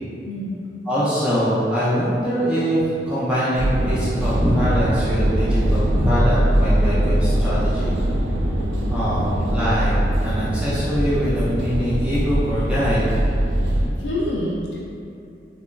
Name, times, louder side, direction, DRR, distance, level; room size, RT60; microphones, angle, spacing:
voice 1, 0.2-0.6 14.0-14.8, left 1 dB, 65° left, -5 dB, 0.4 m, -26 dB
voice 2, 0.9-8.0 8.9-9.9 10.2-13.1, equal, 5° right, -11 dB, 0.4 m, -23 dB
sound 1, 3.5-13.9, right 1 dB, 80° right, 0.3 m, -21 dB
2.9 x 2.2 x 2.2 m, 2.5 s
head